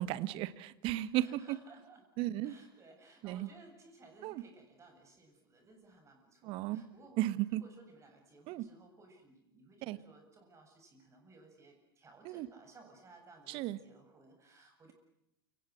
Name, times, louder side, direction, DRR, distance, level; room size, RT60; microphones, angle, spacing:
voice 1, 0.0-1.6 2.2-2.6 3.2-3.5 4.2-4.4 6.4-6.8 7.2-7.6 8.5-8.7 9.8-10.0 12.2-12.5 13.5-13.8, right 15 dB, 45° right, 16 dB, 1.5 m, -35 dB
voice 2, 1.2-2.0 2.4-7.2 7.5-14.9, right 3 dB, 25° right, 4 dB, 7.5 m, -59 dB
29.5 x 26.5 x 6.2 m, 0.84 s
figure-of-eight pair, 85°, 12 cm